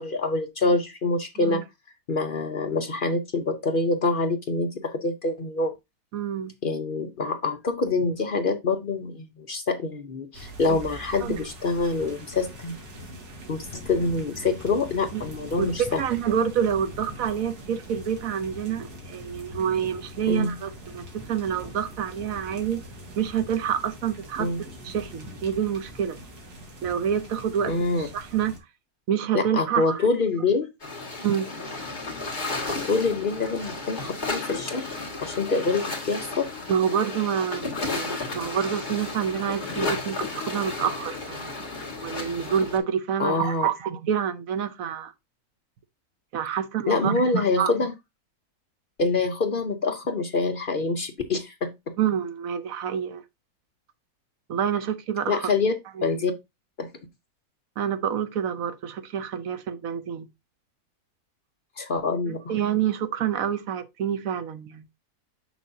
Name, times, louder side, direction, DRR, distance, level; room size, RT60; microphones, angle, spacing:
voice 1, 0.0-1.6 2.1-5.7 6.6-12.7 13.5-16.0 20.3-20.5 24.4-24.6 27.6-28.1 29.3-30.7 32.9-34.9 35.2-36.6 43.2-43.7 46.9-47.9 49.0-51.7 55.3-55.7 56.0-56.3 56.8-56.9 61.8-62.5, left 3 dB, 50° left, 0.6 m, -26 dB
voice 2, 6.1-6.5 10.7-10.8 11.2-11.4 15.1-15.2 15.6-22.8 23.2-24.5 24.8-26.2 26.8-28.6 29.1-30.0 31.2-31.5 36.7-41.5 42.0-45.1 46.3-47.7 52.0-53.2 54.5-55.5 56.0-56.1 57.8-60.3 62.2-64.8, right 8 dB, 65° right, 1.1 m, -27 dB
sound 1, 10.3-28.6, equal, 80° right, 2.1 m, -42 dB
sound 2, 30.8-42.8, left 3 dB, 30° left, 1.8 m, -33 dB
6.6 x 6.1 x 2.7 m
omnidirectional pair, 1.6 m